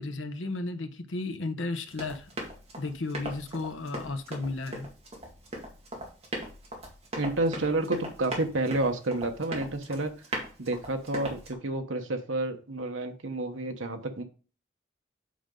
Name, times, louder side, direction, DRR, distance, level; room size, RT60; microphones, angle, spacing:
voice 1, 0.0-2.3 2.7-4.9, left 3 dB, 75° left, 0.9 m, -34 dB
Run, 1.9-11.5, right 1 dB, 30° right, 2.1 m, -39 dB
voice 2, 7.2-10.1 10.6-14.2, right 2 dB, 80° right, 1.1 m, -30 dB
8.4 x 5.1 x 3.8 m
head